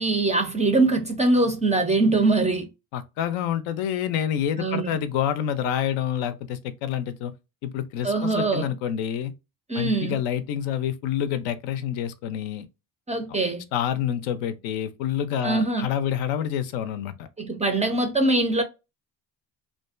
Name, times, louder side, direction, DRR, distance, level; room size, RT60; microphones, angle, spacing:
voice 1, 0.0-2.7 4.6-5.0 8.0-8.7 9.7-10.2 13.1-13.6 15.4-15.9 17.4-18.6, right 2 dB, 15° right, 0.4 m, -22 dB
voice 2, 2.9-7.3 7.6-9.3 9.7-12.7 13.7-17.3, left 9 dB, 70° left, 0.5 m, -27 dB
2.5 x 2.2 x 2.4 m
hypercardioid pair, 60°, 50 cm